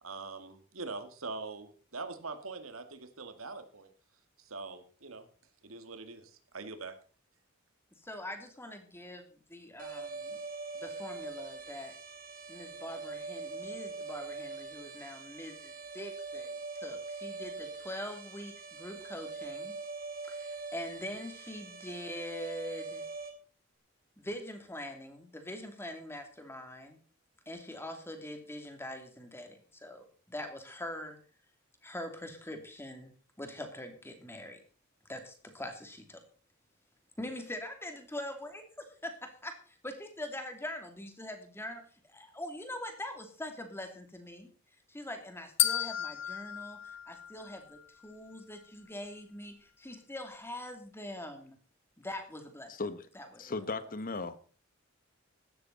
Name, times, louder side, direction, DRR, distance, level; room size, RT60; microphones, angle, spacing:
voice 1, 0.0-3.9 4.4-5.3 5.6-6.9, right 3 dB, 85° right, 2.1 m, -43 dB
voice 2, 8.0-10.4 10.7-12.0 12.5-19.7 20.3-23.0 24.2-27.0 27.5-31.2 31.8-33.1 33.4-34.6 35.1-36.2 37.2-38.5 38.8-44.5 44.9-51.6 52.0-52.7 53.1-53.5, left 1 dB, 10° left, 2.8 m, -43 dB
sound 1, 9.8-23.3, right 3 dB, 45° right, 3.3 m, -43 dB
sound 2, 45.6-47.8, left 12 dB, 65° left, 1.3 m, -33 dB
voice 3, 52.7-53.1 53.4-54.5, left 3 dB, 45° left, 1.1 m, -37 dB
16.0 x 12.5 x 4.1 m
head